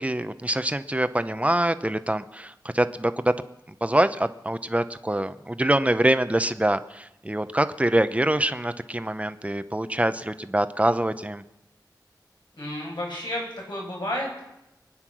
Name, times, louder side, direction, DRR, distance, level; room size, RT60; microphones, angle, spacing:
voice 1, 0.0-3.3 3.8-11.4, right 1 dB, 15° right, 11 dB, 0.9 m, -24 dB
voice 2, 12.6-14.4, left 1 dB, 70° left, -3 dB, 7.9 m, -31 dB
23.5 x 9.7 x 6.2 m, 0.90 s
wide cardioid pair, 60°, 8 cm